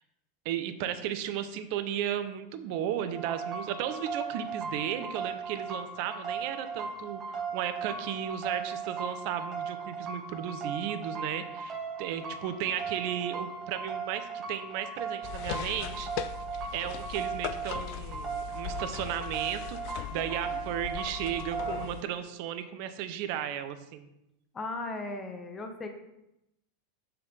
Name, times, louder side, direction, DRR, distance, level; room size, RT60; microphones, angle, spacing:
voice 1, 0.4-16.1 16.5-24.1, right 10 dB, 50° right, 10 dB, 0.7 m, -35 dB
sound 1, 3.1-21.9, right 5 dB, 30° right, 1.3 m, -37 dB
sound 2, 15.2-22.0, left 12 dB, 50° left, 0.3 m, -39 dB
voice 2, 24.5-25.9, left 2 dB, 20° left, 4 dB, 1.1 m, -36 dB
6.8 x 5.6 x 3.9 m, 0.85 s
figure-of-eight pair, 85°, 0 cm